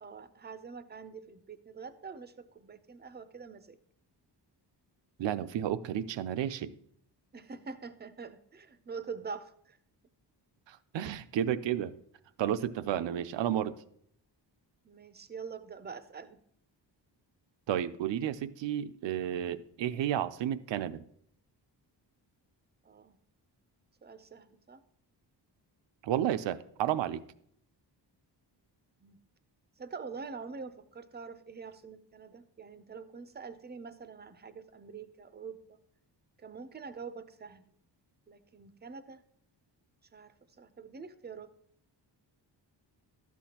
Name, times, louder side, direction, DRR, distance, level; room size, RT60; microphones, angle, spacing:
voice 1, 0.0-3.8 7.3-9.8 14.8-16.4 22.8-23.2 24.0-24.8 29.0-29.2 29.8-35.6 36.4-37.7 38.3-39.2 40.1-40.3 40.6-41.5, right 5 dB, 25° right, 12 dB, 0.5 m, -45 dB
voice 2, 5.2-6.7 10.7-12.0 12.4-13.7 17.7-21.0 26.0-27.2, right 10 dB, 80° right, 13 dB, 0.6 m, -32 dB
12.5 x 8.3 x 2.9 m, 0.69 s
wide cardioid pair, 145°, 43 cm